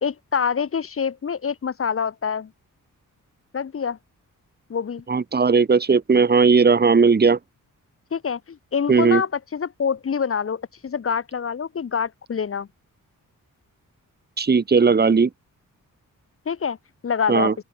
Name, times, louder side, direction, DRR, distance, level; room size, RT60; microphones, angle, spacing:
voice 1, 0.0-2.5 3.5-4.0 4.7-5.0 8.1-12.7 16.5-16.8 17.0-17.5, left 6 dB, 40° left, 0.9 m, -26 dB
voice 2, 5.1-7.4 8.9-9.2 14.4-15.3 17.3-17.5, right 5 dB, 30° right, 1.0 m, -17 dB
open air
wide cardioid pair, 120°, 33 cm